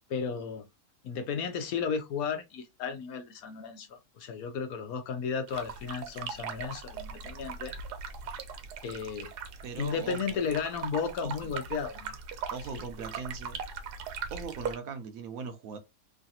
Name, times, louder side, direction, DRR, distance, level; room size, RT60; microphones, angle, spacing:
voice 1, 0.1-0.6 1.0-7.7 8.8-9.3 9.8-12.1 12.7-12.8, left 6 dB, 70° left, 1.1 m, -34 dB
sound 1, 5.5-14.8, right 6 dB, 90° right, 1.2 m, -40 dB
voice 2, 9.6-10.4 11.2-11.5 12.5-13.6 14.3-15.8, right 5 dB, 70° right, 1.0 m, -40 dB
3.1 x 2.5 x 2.7 m
omnidirectional pair, 1.7 m